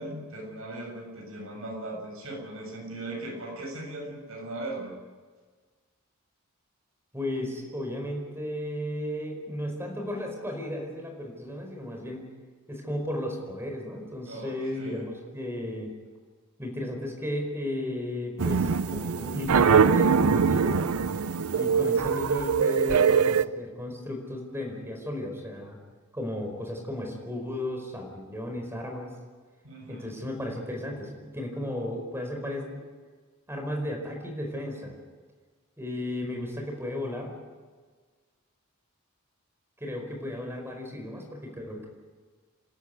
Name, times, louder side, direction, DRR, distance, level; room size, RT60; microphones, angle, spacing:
voice 1, 0.0-4.9 14.3-15.1 29.6-30.1, right 1 dB, 70° right, 0 dB, 7.3 m, -38 dB
voice 2, 7.1-12.2 12.7-15.9 16.6-20.9 21.5-25.8 26.1-29.1 29.9-32.8 33.5-34.9 35.8-37.4 39.8-41.9, left 1 dB, 10° right, 2 dB, 4.7 m, -34 dB
sound 1, 18.4-23.4, right 6 dB, 90° right, 0.6 m, -23 dB
28.0 x 13.0 x 9.5 m, 1.5 s
head